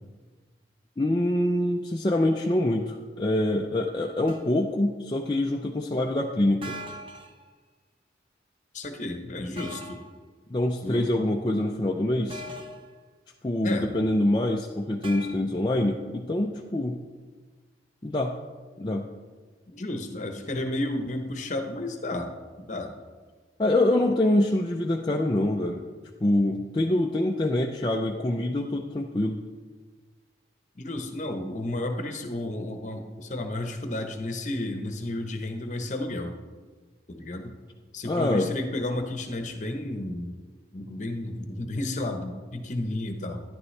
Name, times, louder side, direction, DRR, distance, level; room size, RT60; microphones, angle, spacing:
voice 1, 1.0-6.8 10.5-12.4 13.4-17.0 18.0-18.4 18.8-19.1 23.6-25.8 26.2-29.4 38.0-38.5, left 1 dB, 25° left, 1 dB, 0.5 m, -25 dB
sound 1, 4.3-4.6 6.6-7.4 9.6-10.1 12.3-12.9 15.0-15.3, equal, 30° right, 0.7 m, -40 dB
voice 2, 8.7-10.0 10.8-11.2 13.6-13.9 19.7-22.3 22.6-22.9 30.8-36.4 37.1-37.5 37.9-40.3 40.7-43.4, left 1 dB, 40° left, 5 dB, 0.9 m, -32 dB
12.5 x 10.5 x 3.3 m, 1.4 s
head